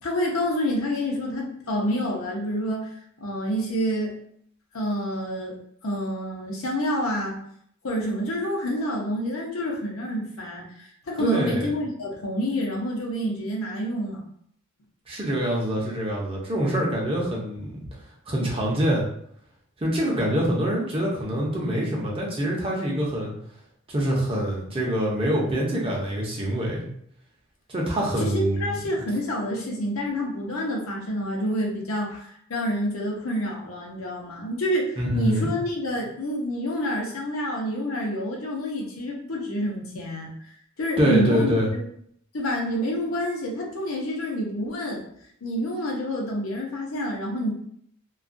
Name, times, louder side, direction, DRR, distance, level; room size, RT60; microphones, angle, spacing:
voice 1, 0.0-2.9 3.2-4.2 4.7-5.5 5.8-7.4 7.8-14.2 28.2-40.3 40.8-41.8 42.3-45.0 45.4-47.5, equal, 75° left, -2 dB, 0.7 m, -28 dB
voice 2, 11.2-11.6 15.1-17.8 18.3-19.1 19.8-23.3 23.9-26.8 27.7-28.8 35.0-35.5 41.0-41.7, equal, 25° right, -3 dB, 0.6 m, -25 dB
2.3 x 2.2 x 2.5 m, 0.68 s
head